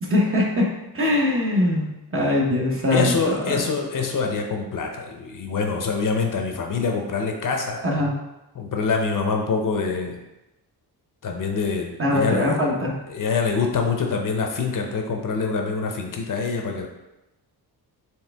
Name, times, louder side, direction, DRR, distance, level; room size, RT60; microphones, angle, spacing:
voice 1, 0.0-0.7 0.9-3.7 7.8-8.1 12.0-12.9, left 1 dB, 35° right, -2 dB, 1.0 m, -22 dB
voice 2, 2.9-7.8 8.6-10.2 11.2-12.6 13.1-16.9, left 4 dB, 55° left, 3 dB, 0.7 m, -25 dB
4.5 x 3.3 x 3.4 m, 0.97 s
wide cardioid pair, 110°, 39 cm